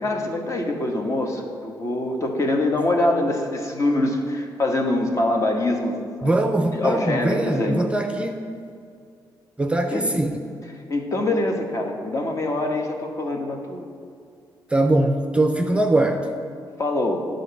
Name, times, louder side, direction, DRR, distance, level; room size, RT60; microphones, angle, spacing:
voice 1, 0.0-6.3 6.7-7.8 9.9-10.1 10.9-13.9 16.8-17.3, left 2 dB, 40° left, 2 dB, 1.2 m, -24 dB
voice 2, 6.2-8.5 9.6-10.5 14.7-16.3, right 1 dB, 15° right, 4 dB, 0.5 m, -22 dB
9.2 x 3.9 x 6.9 m, 2.3 s
cardioid pair, 85°, 8 cm